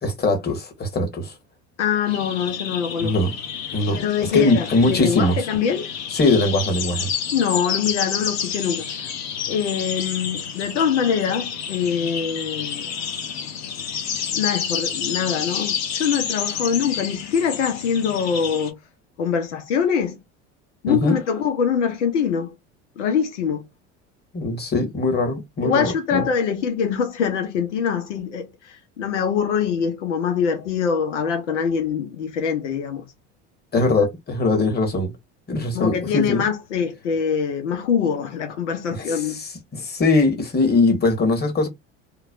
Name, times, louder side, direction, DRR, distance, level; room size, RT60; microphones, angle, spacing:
voice 1, 0.0-1.3 3.0-3.3 3.7-5.5 6.1-7.1 20.9-21.2 24.3-26.3 33.7-35.1 35.5-36.4 38.9-41.7, left 2 dB, 30° left, 1.5 m, -21 dB
voice 2, 1.8-3.1 3.9-5.9 7.3-9.1 9.5-12.9 14.3-18.8 19.2-20.2 20.8-22.5 23.0-23.6 25.6-33.1 35.7-39.4, left 7 dB, 90° left, 0.7 m, -24 dB
sound 1, 2.1-18.7, left 7 dB, 50° left, 1.0 m, -30 dB
3.1 x 2.3 x 2.4 m
hypercardioid pair, 75°, 35 cm